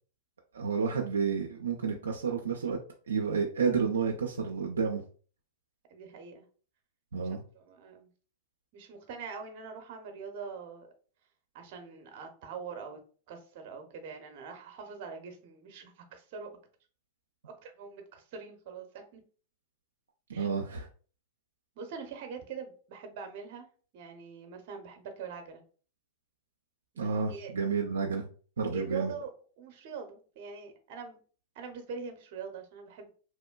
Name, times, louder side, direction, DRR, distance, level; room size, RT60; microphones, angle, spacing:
voice 1, 0.5-2.8 3.1-5.0 7.1-7.4 20.3-20.9 27.0-28.3 28.6-29.1, right 5 dB, 85° right, 1 dB, 0.3 m, -30 dB
voice 2, 5.9-6.5 7.5-8.1 8.7-10.9 11.5-13.0 13.3-16.5 17.4-19.2 20.3-20.5 21.8-23.7 23.9-25.6 26.9-27.5 28.7-31.2 31.5-33.1, right 5 dB, 55° right, 5 dB, 0.7 m, -43 dB
3.0 x 2.1 x 2.2 m, 0.40 s
hypercardioid pair, 105°, 0 cm